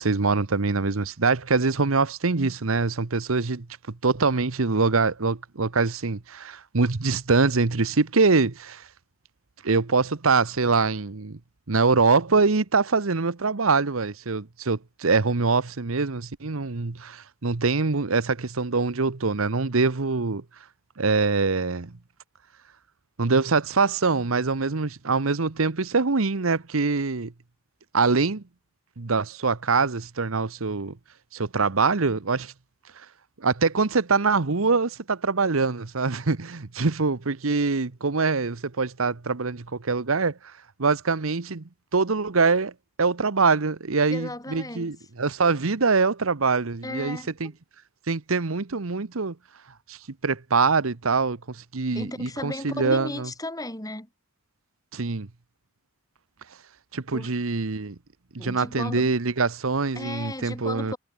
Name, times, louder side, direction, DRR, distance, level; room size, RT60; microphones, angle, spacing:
voice 1, 0.0-3.7 4.0-8.9 9.6-11.4 11.7-20.4 21.0-21.9 23.2-27.3 27.9-28.4 29.0-31.0 31.3-32.5 33.4-40.5 40.8-41.6 41.9-42.7 43.0-47.5 48.1-49.3 49.9-53.3 54.9-55.3 56.9-58.0 58.3-60.9, right 4 dB, 85° right, 1.1 m, -24 dB
voice 2, 44.1-44.9 46.8-47.3 51.9-54.1 57.1-57.3 58.4-59.2 60.0-61.0, left 1 dB, 15° left, 7.0 m, -35 dB
head